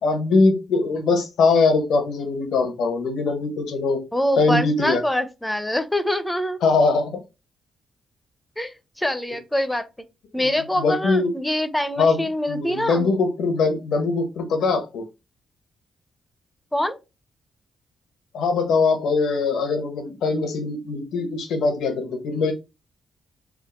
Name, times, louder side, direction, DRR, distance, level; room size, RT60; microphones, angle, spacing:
voice 1, 0.0-4.0 4.4-5.0 6.6-7.2 10.4-10.5 10.8-11.3 12.0-12.2 12.5-15.0 18.3-22.5, left 4 dB, 85° left, 1.0 m, -21 dB
voice 2, 4.1-6.6 8.6-9.8 10.3-13.1 16.7-17.0, left 1 dB, 10° left, 0.6 m, -24 dB
3.6 x 2.1 x 3.6 m
cardioid pair, 75°, 0 cm